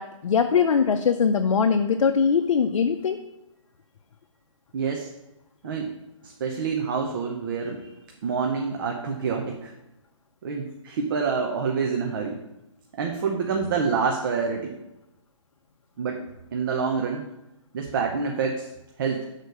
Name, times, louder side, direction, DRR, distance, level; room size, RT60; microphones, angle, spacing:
voice 1, 0.0-3.2, left 6 dB, 85° left, 6 dB, 0.6 m, -21 dB
voice 2, 4.7-5.1 5.6-5.9 6.2-7.9 8.2-9.7 10.4-12.4 13.0-14.7 16.0-16.2 16.5-17.3 17.7-18.7 19.0-19.3, right 5 dB, 40° right, 2 dB, 0.8 m, -27 dB
6.5 x 4.1 x 6.4 m, 0.92 s
hypercardioid pair, 160°, 17 cm